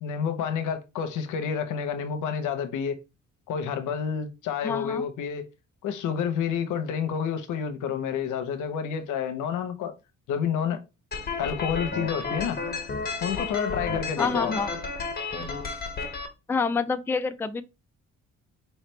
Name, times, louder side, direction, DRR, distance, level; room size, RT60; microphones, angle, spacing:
voice 1, 0.0-3.0 3.5-5.4 5.8-9.9 10.3-10.8 11.4-12.6 13.2-14.5, left 7 dB, 90° left, 0.9 m, -29 dB
voice 2, 4.6-5.0 14.2-14.7 16.5-17.6, left 4 dB, 10° left, 0.3 m, -27 dB
sound 1, 11.1-16.3, left 4 dB, 30° left, 1.3 m, -32 dB
4.7 x 3.3 x 3.2 m
cardioid pair, 90°, 30 cm